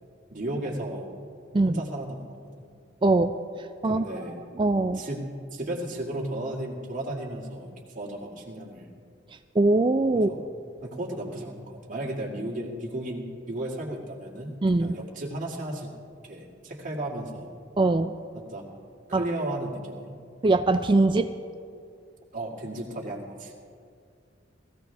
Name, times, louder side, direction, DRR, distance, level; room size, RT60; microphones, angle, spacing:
voice 1, 0.3-1.1 1.6-2.7 3.8-4.4 4.9-8.9 10.1-10.4 10.8-15.9 16.2-17.5 18.3-18.6 19.1-20.2 22.3-23.5, right 1 dB, 45° right, -3 dB, 2.1 m, -34 dB
voice 2, 3.0-4.0 4.6-5.0 9.6-10.3 14.6-15.0 17.8-18.1 19.1-19.2 20.4-21.3, right 2 dB, 25° right, 9 dB, 0.4 m, -22 dB
20.0 x 15.5 x 3.4 m, 2.3 s
head